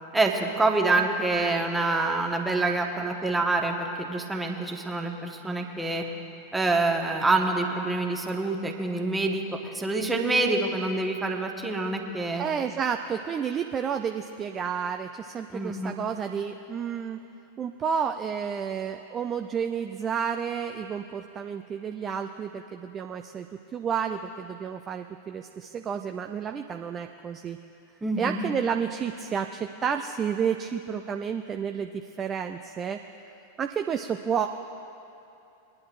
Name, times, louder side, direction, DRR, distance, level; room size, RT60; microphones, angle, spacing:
voice 1, 0.1-6.0 6.5-12.4 15.5-15.9 28.0-28.4, right 2 dB, 10° right, 2 dB, 1.2 m, -26 dB
voice 2, 12.3-17.2 17.6-23.5 23.7-27.6 28.2-31.9 32.2-33.0 33.6-34.5, right 7 dB, 25° right, 6 dB, 0.4 m, -30 dB
22.5 x 10.5 x 2.5 m, 2.8 s
figure-of-eight pair, 90°, 0 cm